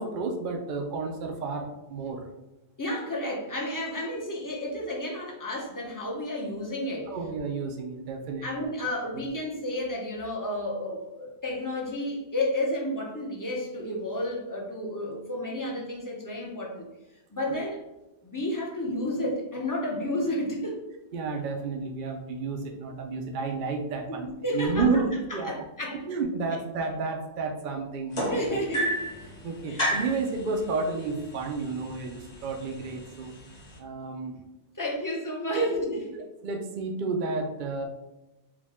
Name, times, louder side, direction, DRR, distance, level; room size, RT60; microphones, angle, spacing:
voice 1, 0.0-2.2 7.1-8.5 9.1-9.2 17.5-17.6 21.1-24.3 24.5-25.6 26.1-28.6 29.4-33.3 33.8-34.4 35.6-35.7 36.1-37.8, right 4 dB, 55° right, 2 dB, 0.6 m, -31 dB
voice 2, 2.8-7.1 8.4-16.9 17.3-17.8 18.2-20.8 24.1-24.9 25.3-26.0 28.3-28.9 29.7-29.8 34.8-36.1, left 1 dB, 20° left, -1 dB, 0.7 m, -31 dB
sound 1, 28.1-29.2 29.8-30.2 31.2-31.3 31.7-32.1 32.8-32.9, equal, 40° left, 1.0 m, -28 dB
4.8 x 2.3 x 3.5 m, 0.96 s
omnidirectional pair, 1.1 m